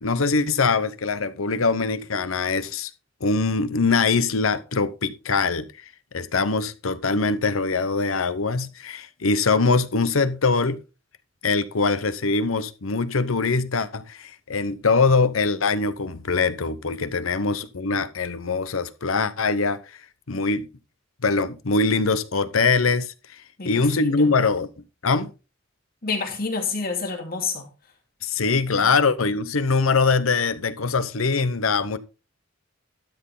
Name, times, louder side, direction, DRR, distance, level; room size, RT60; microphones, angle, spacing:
voice 1, 0.0-2.9 3.2-5.7 6.1-10.8 11.4-19.8 20.3-20.7 21.2-23.1 23.6-24.7 25.0-25.3 28.2-32.0, left 4 dB, 90° left, 0.9 m, -22 dB
voice 2, 23.6-24.3 26.0-27.7 28.8-28.9, left 4 dB, 45° left, 2.7 m, -29 dB
12.5 x 7.7 x 3.8 m
head